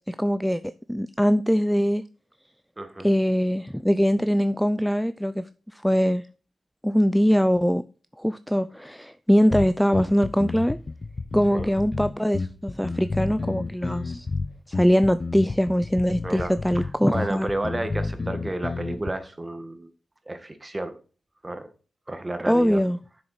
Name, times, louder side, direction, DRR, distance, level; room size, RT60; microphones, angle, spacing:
voice 1, 0.1-0.6 0.9-2.0 3.0-6.2 6.8-7.8 8.2-10.8 11.3-14.3 14.7-17.5 22.5-23.0, equal, ahead, 0.4 m, -22 dB
voice 2, 2.8-3.1 11.5-11.7 16.2-19.9 20.3-21.0 21.4-21.7 22.1-22.8, right 1 dB, 25° right, 1.5 m, -31 dB
sound 1, 9.5-19.1, left 3 dB, 40° left, 0.8 m, -31 dB
6.9 x 6.3 x 4.8 m
cardioid pair, 60°, 0 cm